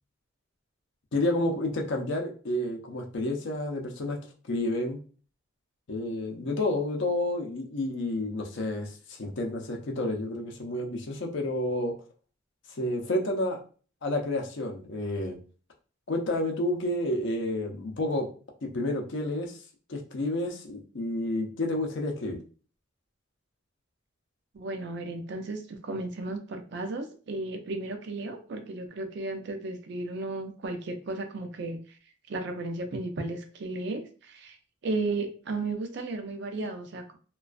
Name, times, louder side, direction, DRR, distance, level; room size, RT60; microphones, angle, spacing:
voice 1, 1.1-4.2 4.5-5.0 5.9-11.9 12.7-13.6 14.0-15.4 16.1-18.3 18.6-19.6 19.9-22.4, left 1 dB, 60° left, 2 dB, 0.5 m, -30 dB
voice 2, 24.5-31.8 32.3-34.6 34.8-37.2, right 2 dB, 55° right, 6 dB, 0.4 m, -34 dB
2.4 x 2.3 x 2.3 m, 0.39 s
head